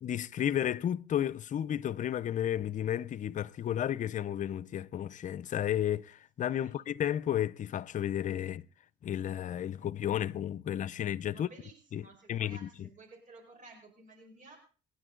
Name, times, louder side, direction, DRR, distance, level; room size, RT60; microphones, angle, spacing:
voice 1, 0.0-8.6 9.0-11.5 11.9-12.0 12.3-12.9, left 10 dB, 50° left, 0.7 m, -32 dB
voice 2, 11.3-14.6, right 3 dB, 50° right, 4.9 m, -54 dB
27.5 x 10.0 x 3.8 m
cardioid pair, 110°, 17 cm